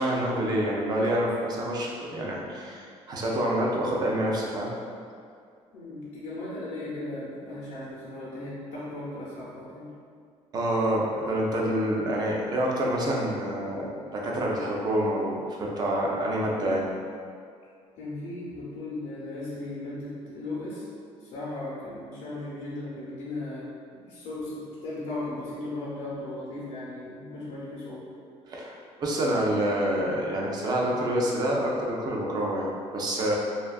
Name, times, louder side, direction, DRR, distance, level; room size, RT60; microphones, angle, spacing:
voice 1, 0.0-4.7 10.5-16.9 28.5-33.4, right 1 dB, 35° right, -2 dB, 0.4 m, -27 dB
voice 2, 5.7-9.9 18.0-20.9 21.2-28.1, left 2 dB, 90° left, -8 dB, 0.5 m, -37 dB
2.5 x 2.2 x 2.2 m, 2.3 s
cardioid pair, 150°, 12 cm